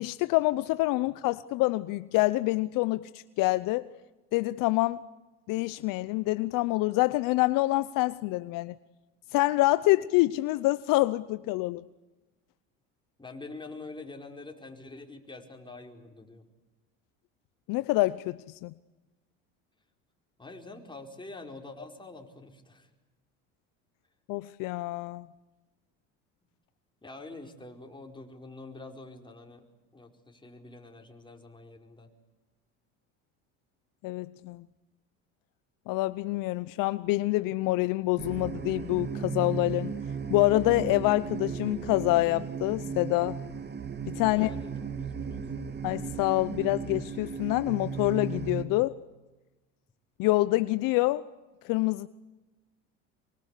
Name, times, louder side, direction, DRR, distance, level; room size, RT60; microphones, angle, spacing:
voice 1, 0.0-3.9 4.3-5.0 5.5-8.7 9.3-11.8 17.7-18.7 24.3-25.2 34.0-34.6 35.9-39.9 40.3-43.4 44.1-44.5 45.8-49.0 50.2-51.2 51.6-52.1, left 19 dB, 65° left, 15 dB, 0.8 m, -26 dB
voice 2, 13.2-16.5 20.4-22.9 27.0-29.7 29.9-32.1 44.3-45.6, left 3 dB, 15° left, 2 dB, 4.9 m, -46 dB
sound 1, 38.2-48.6, right 6 dB, 30° right, 2.3 m, -36 dB
24.5 x 24.0 x 8.4 m, 1.1 s
supercardioid pair, 80°, 35 cm